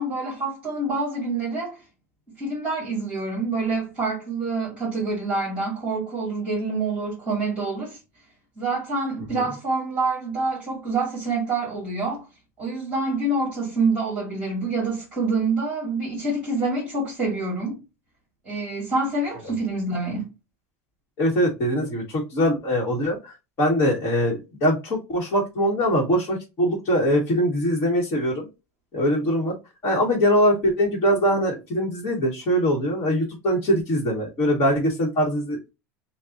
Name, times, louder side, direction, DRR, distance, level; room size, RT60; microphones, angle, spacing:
voice 1, 0.0-1.8 2.4-8.0 8.6-12.3 12.6-17.8 18.4-20.3, right 3 dB, 15° right, 2.3 m, -26 dB
voice 2, 21.2-28.5 28.9-29.5 29.8-35.7, equal, 30° left, 1.4 m, -22 dB
6.5 x 2.3 x 2.5 m
supercardioid pair, 175°, 8 cm